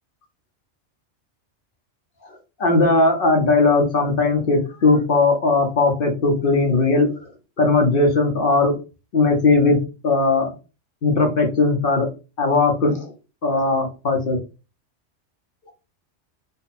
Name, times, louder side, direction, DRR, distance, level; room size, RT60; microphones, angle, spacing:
voice 1, 2.6-7.1 7.6-8.7 9.1-9.8 10.0-10.5 11.0-12.1 12.4-13.1 13.4-14.4, left 3 dB, 50° left, 3 dB, 1.1 m, -18 dB
4.1 x 2.3 x 4.1 m, 0.32 s
omnidirectional pair, 1.2 m